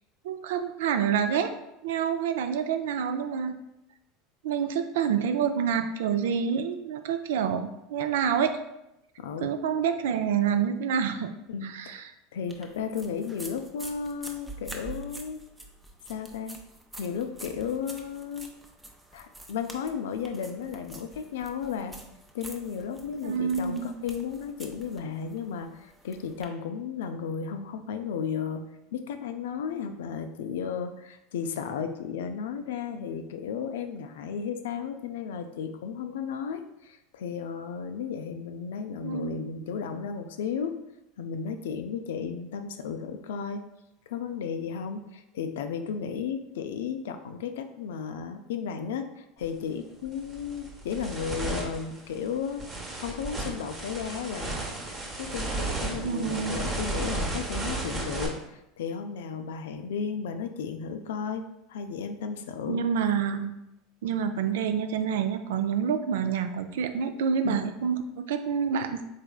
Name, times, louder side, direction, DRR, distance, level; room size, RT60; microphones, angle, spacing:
voice 1, 0.2-1.5 1.8-3.5 4.4-8.5 9.4-11.3 11.6-12.0 23.2-24.0 39.0-39.4 56.0-56.6 62.7-63.5 64.0-69.0, right 7 dB, 70° right, 9 dB, 0.3 m, -27 dB
voice 2, 9.2-9.5 11.5-12.0 12.3-15.4 16.1-16.6 17.0-18.5 19.1-22.0 22.3-40.7 41.2-43.6 44.1-52.6 53.0-54.5 55.2-61.4 61.7-62.8 67.4-67.7, left 6 dB, 75° left, 8 dB, 0.3 m, -34 dB
sound 1, 12.5-26.4, right 2 dB, 10° right, 0.6 m, -46 dB
sound 2, 49.4-49.6 50.1-58.3, right 2 dB, 30° right, 1.0 m, -34 dB
3.9 x 3.2 x 2.3 m, 0.87 s
hypercardioid pair, 80°, 0 cm